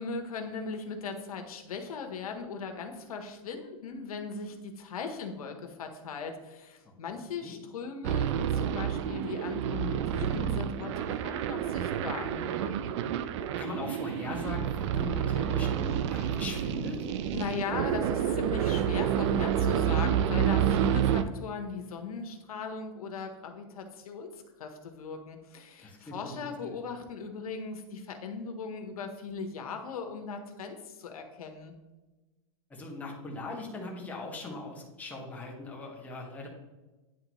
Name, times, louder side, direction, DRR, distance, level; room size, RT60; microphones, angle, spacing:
voice 1, 0.0-12.8 17.3-31.7, left 5 dB, 90° left, 5 dB, 1.1 m, -38 dB
sound 1, 8.0-21.2, right 9 dB, 55° right, 0.5 m, -29 dB
voice 2, 13.4-17.1 25.8-26.3 26.6-26.8 32.7-36.5, left 2 dB, 10° left, -2 dB, 1.3 m, -40 dB
9.9 x 3.8 x 3.0 m, 1.1 s
supercardioid pair, 145°, 18 cm